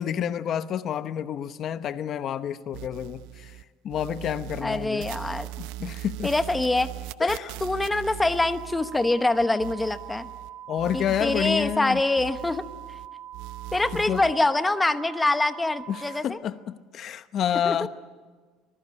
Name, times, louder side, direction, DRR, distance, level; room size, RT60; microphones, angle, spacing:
voice 1, 0.0-3.6 3.8-5.1 5.6-6.3 7.2-7.5 10.7-12.0 13.9-14.2 15.9-17.9, left 9 dB, 45° left, 12 dB, 0.9 m, -29 dB
sound 1, 2.7-3.6 3.9-10.5 10.8-13.1 13.3-14.3, right 17 dB, 85° right, 0.7 m, -40 dB
voice 2, 4.6-5.5 6.2-6.9 7.2-10.3 10.9-12.6 13.7-16.4 17.6-17.9, left 2 dB, 10° left, 10 dB, 1.0 m, -25 dB
sound 2, 8.4-16.2, right 11 dB, 35° right, 5.0 m, -42 dB
25.5 x 20.5 x 9.8 m, 1.4 s
cardioid pair, 130°, 0 cm